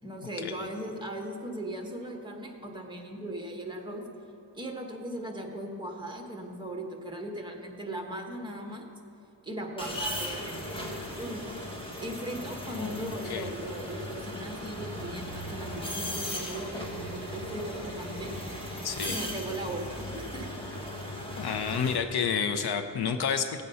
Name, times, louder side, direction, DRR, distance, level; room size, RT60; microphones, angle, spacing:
voice 1, 0.0-4.0 4.5-8.9 9.4-10.8 11.2-11.5 12.0-18.3 19.1-20.5, right 1 dB, 10° right, 2 dB, 1.5 m, -38 dB
sound 1, 9.8-22.0, equal, 10° left, 1.8 m, -37 dB
voice 2, 12.8-13.5 18.8-19.2 21.4-23.6, left 6 dB, 60° left, 8 dB, 0.7 m, -30 dB
17.5 x 7.7 x 5.6 m, 2.8 s
cardioid pair, 120°, 43 cm